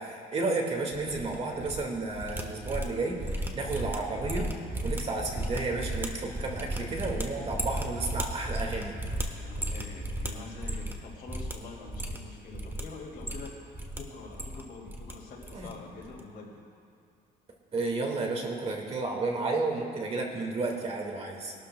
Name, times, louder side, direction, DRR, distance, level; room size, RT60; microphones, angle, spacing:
voice 1, 0.0-4.5 4.8-9.0 15.5-15.7 17.7-21.5, right 3 dB, 35° right, 0 dB, 1.9 m, -32 dB
sound 1, 0.9-1.8 2.1-11.0 11.3-11.5 11.8-12.8 13.1-14.0 14.2-15.1 15.4-15.7 16.0-16.2, right 1 dB, 15° right, 1.3 m, -35 dB
voice 2, 9.4-13.5 13.9-16.6, left 4 dB, 65° left, -1 dB, 2.6 m, -45 dB
22.5 x 12.5 x 2.3 m, 2.4 s
cardioid pair, 110°, 17 cm